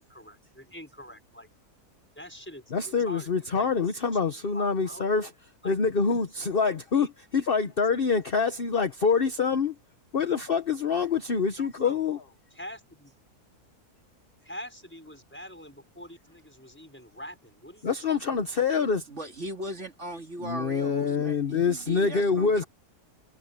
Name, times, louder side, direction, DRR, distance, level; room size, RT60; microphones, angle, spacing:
voice 1, 0.1-1.5 2.2-3.3 3.6-5.1 5.6-5.7 6.6-7.5 11.5-12.1 12.5-13.1 14.4-18.4 22.5-22.7, equal, 5° left, 6.1 m, -45 dB
voice 2, 2.7-5.3 5.6-7.1 7.3-9.7 10.1-12.2 17.8-19.1 20.4-22.6, left 5 dB, 40° left, 1.2 m, -25 dB
voice 3, 19.1-22.6, right 1 dB, 50° right, 2.8 m, -38 dB
omnidirectional pair, 1.6 m